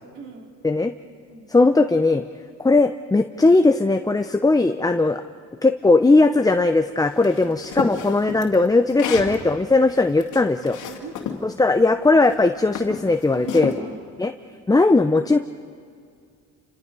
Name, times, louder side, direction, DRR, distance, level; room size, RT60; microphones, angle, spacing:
voice 1, 0.1-0.5 1.3-1.6 7.3-7.6 9.1-9.2 10.8-11.1 13.3-14.1, right 5 dB, 75° right, 0 dB, 4.2 m, -39 dB
voice 2, 1.5-2.2 2.6-5.2 5.6-10.8 11.4-13.7 14.2-14.3 14.7-15.4, left 3 dB, 10° left, 7 dB, 0.7 m, -18 dB
sound 1, 7.2-9.4 9.9-11.4 12.2-12.4 12.7-13.8, left 8 dB, 80° left, 2.4 m, -30 dB
28.5 x 26.0 x 5.4 m, 2.2 s
cardioid pair, 90°, 30 cm